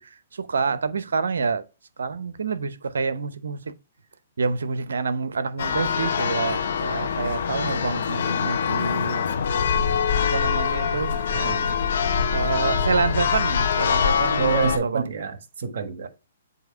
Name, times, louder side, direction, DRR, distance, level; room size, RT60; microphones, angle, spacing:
voice 1, 0.0-1.6 2.0-3.7 4.4-9.3 10.2-11.1 12.3-15.1, right 4 dB, 85° right, 0.7 m, -27 dB
Church bell, 5.6-14.8, left 6 dB, 65° left, 0.9 m, -24 dB
voice 2, 11.3-11.7 14.4-16.1, right 6 dB, 65° right, 1.4 m, -27 dB
7.8 x 2.8 x 4.6 m
hypercardioid pair, 135°, 0 cm